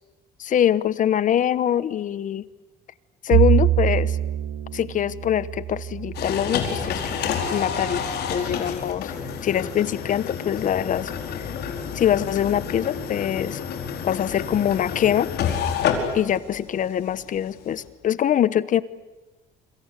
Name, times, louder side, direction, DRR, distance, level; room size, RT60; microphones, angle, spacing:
voice 1, 0.4-2.4 3.2-4.2 4.7-9.1 9.4-11.1 11.9-13.6 14.0-15.3 16.1-18.8, left 10 dB, 50° left, 17 dB, 1.1 m, -23 dB
Bowed string instrument, 3.3-7.7, right 12 dB, 80° right, 1.6 m, -24 dB
sound 1, 6.1-17.9, left 7 dB, 75° left, 4.7 m, -29 dB
26.0 x 25.5 x 8.3 m, 1.1 s
cardioid pair, 110°, 17 cm